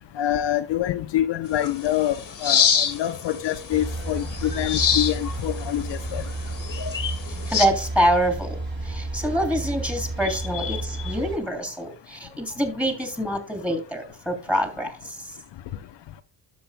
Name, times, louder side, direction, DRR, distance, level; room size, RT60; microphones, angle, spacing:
voice 1, 0.2-6.2 10.2-11.1, left 12 dB, 65° left, 0.8 m, -26 dB
sound 1, 1.5-7.7, left 7 dB, 40° left, 1.8 m, -27 dB
sound 2, 3.7-11.4, right 2 dB, 25° right, 4.8 m, -32 dB
voice 2, 7.5-8.6 8.8-15.1, equal, 5° right, 3.3 m, -25 dB
12.5 x 7.9 x 2.2 m
cardioid pair, 80°, 47 cm